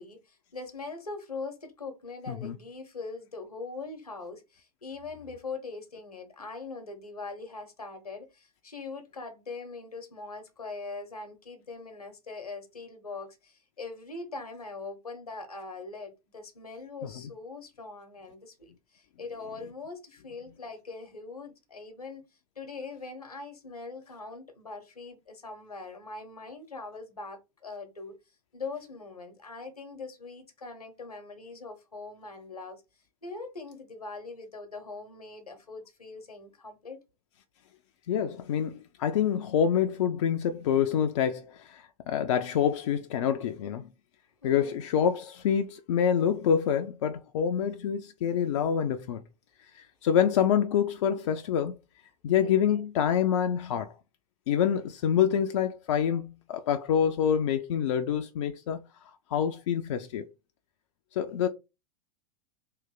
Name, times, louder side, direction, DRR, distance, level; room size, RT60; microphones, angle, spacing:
voice 1, 0.0-22.2 22.6-28.1 28.5-32.8 33.2-37.0 44.4-44.7 52.4-52.9, left 3 dB, 80° left, 1.0 m, -42 dB
voice 2, 38.1-43.9 44.4-49.2 49.7-51.8 52.2-53.9 54.5-58.8 59.3-60.3 61.1-61.5, left 8 dB, 55° left, 0.4 m, -26 dB
3.2 x 2.6 x 3.8 m
figure-of-eight pair, 90°, 19 cm